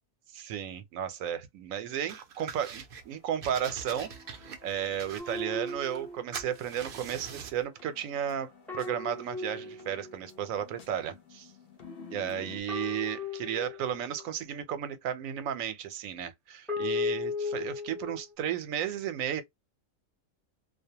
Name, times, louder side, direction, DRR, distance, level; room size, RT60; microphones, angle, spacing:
voice 1, 0.3-11.4 12.1-19.4, right 9 dB, 85° right, 1.0 m, -34 dB
sound 1, 2.1-3.0 3.4-6.1 6.3-7.6, right 6 dB, 60° right, 0.6 m, -44 dB
sound 2, 2.9-12.6, left 5 dB, 50° left, 0.8 m, -53 dB
sound 3, 5.2-6.6 8.7-10.5 12.7-14.4 16.7-18.2, left 4 dB, ahead, 0.5 m, -36 dB
2.4 x 2.1 x 2.8 m
omnidirectional pair, 1.4 m